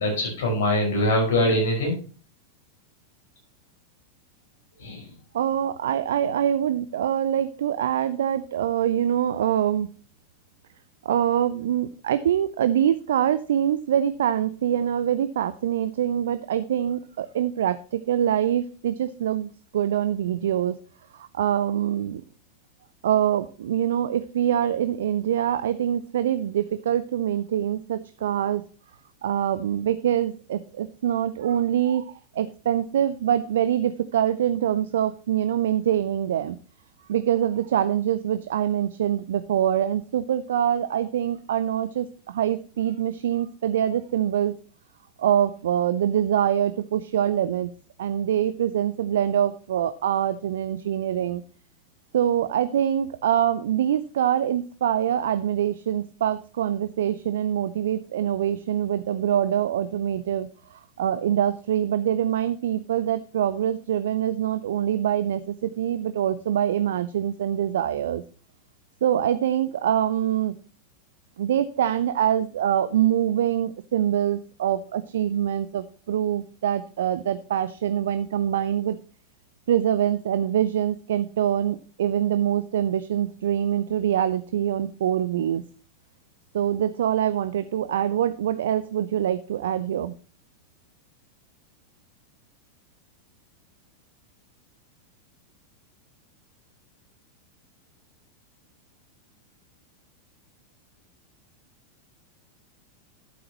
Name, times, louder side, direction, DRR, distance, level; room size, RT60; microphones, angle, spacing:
voice 1, 0.0-1.9 4.8-5.1, left 1 dB, 60° left, 1 dB, 5.3 m, -23 dB
voice 2, 5.3-9.9 11.0-20.8 21.1-22.2 23.0-28.6 29.2-36.6 37.1-44.5 45.2-47.7 48.0-51.4 52.1-68.2 69.0-70.5 71.4-79.0 79.7-85.6 86.5-90.1, right 10 dB, 60° right, 13 dB, 0.5 m, -24 dB
11.5 x 8.6 x 3.0 m, 0.38 s
figure-of-eight pair, 90°, 0 cm